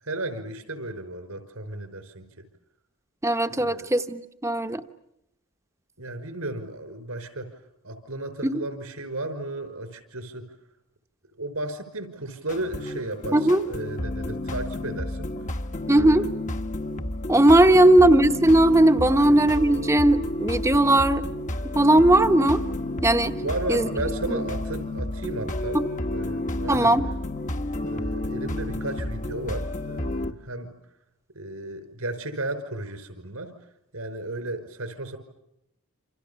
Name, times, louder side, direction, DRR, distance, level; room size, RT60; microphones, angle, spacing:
voice 1, 0.0-2.3 3.5-3.9 6.0-7.5 7.8-10.5 11.4-15.3 15.9-16.3 17.8-18.1 19.1-19.4 23.4-25.8 26.1-26.9 27.8-30.7 31.3-33.5 33.9-35.2, right 2 dB, 85° right, 10 dB, 5.3 m, -34 dB
voice 2, 3.2-4.8 8.4-8.6 13.3-13.6 15.9-16.2 17.3-21.2 21.7-22.6 23.0-23.4 23.7-23.9 24.3-24.4 25.7-25.8 26.7-27.1, right 1 dB, 15° right, 8 dB, 1.1 m, -18 dB
sound 1, 12.5-30.3, left 1 dB, 35° left, 1.3 m, -31 dB
28.5 x 27.0 x 7.0 m, 0.83 s
head